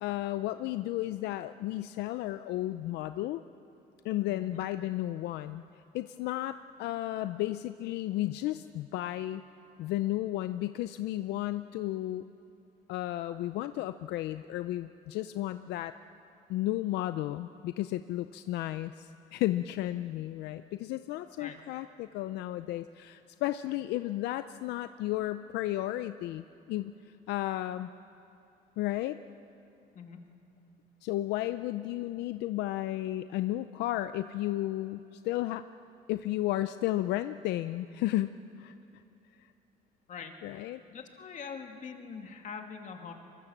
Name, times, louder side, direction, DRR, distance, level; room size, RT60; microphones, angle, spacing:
voice 1, 0.0-3.4 4.0-5.6 5.9-9.4 9.8-12.2 12.9-16.0 16.5-27.0 27.3-27.9 28.8-29.2 31.0-35.6 36.1-38.3 38.6-38.7 40.4-40.8, left 15 dB, 85° left, 11 dB, 0.6 m, -33 dB
voice 2, 4.3-4.6 21.4-21.6 29.9-30.2 40.1-40.3 40.9-43.1, left 6 dB, 50° left, 4 dB, 2.6 m, -43 dB
24.0 x 22.5 x 7.3 m, 2.8 s
cardioid pair, 110°, 17 cm